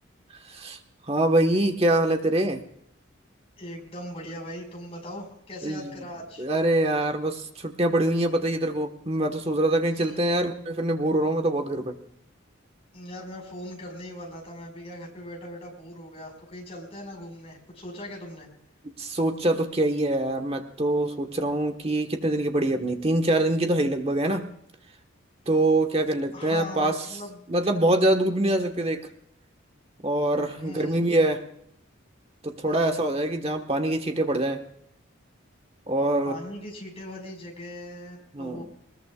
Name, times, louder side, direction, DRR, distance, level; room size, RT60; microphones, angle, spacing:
voice 1, 0.5-0.8 1.1-2.6 5.6-5.9 6.4-12.0 19.0-24.5 25.5-26.9 27.5-29.0 30.0-31.4 32.4-34.6 35.9-36.4 38.3-38.7, right 1 dB, 30° right, 5 dB, 1.4 m, -24 dB
voice 2, 3.6-6.4 9.9-10.3 12.9-18.5 26.3-27.5 30.6-31.0 32.7-33.1 36.2-38.7, left 1 dB, 30° left, 0 dB, 5.3 m, -40 dB
21.0 x 20.5 x 2.4 m, 0.72 s
head